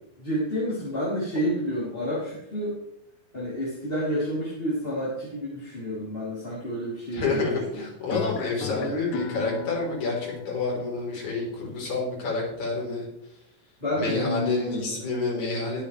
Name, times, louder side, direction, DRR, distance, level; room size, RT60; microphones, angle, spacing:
voice 1, 0.2-2.8 3.3-7.8 8.6-8.9 13.8-15.0, equal, 15° left, -8 dB, 3.0 m, -30 dB
voice 2, 7.1-13.1 13.9-15.8, left 3 dB, 55° left, -3 dB, 5.0 m, -28 dB
sound 1, 8.1-13.1, left 8 dB, 80° left, 2.3 m, -38 dB
21.5 x 7.7 x 3.2 m, 0.80 s
omnidirectional pair, 4.2 m